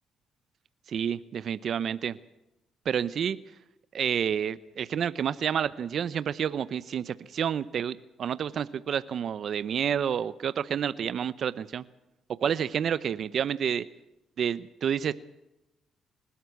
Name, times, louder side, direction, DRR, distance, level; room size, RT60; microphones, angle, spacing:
voice 1, 0.9-2.2 2.9-3.4 3.9-11.8 12.4-13.8 14.4-15.1, right 8 dB, 60° right, 16 dB, 0.7 m, -29 dB
26.5 x 12.5 x 8.3 m, 0.92 s
cardioid pair, 90°, 0 cm